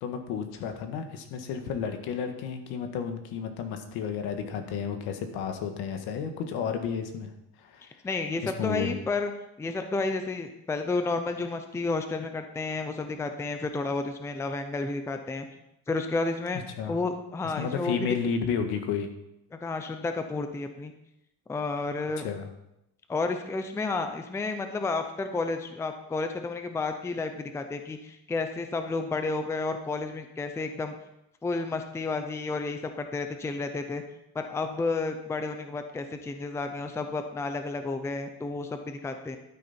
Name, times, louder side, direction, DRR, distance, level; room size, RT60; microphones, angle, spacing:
voice 1, 0.0-7.3 7.6-7.8 8.4-8.9 16.8-16.9 17.6-19.1 22.2-22.5, left 7 dB, 75° left, 6 dB, 1.7 m, -32 dB
voice 2, 8.0-9.3 9.6-15.5 15.9-16.6 16.9-18.1 19.5-20.9 21.5-22.2 23.1-30.9 31.4-34.0 34.3-39.4, left 3 dB, 5° left, 7 dB, 0.5 m, -31 dB
12.0 x 9.3 x 4.3 m, 0.85 s
cardioid pair, 165°, 40 cm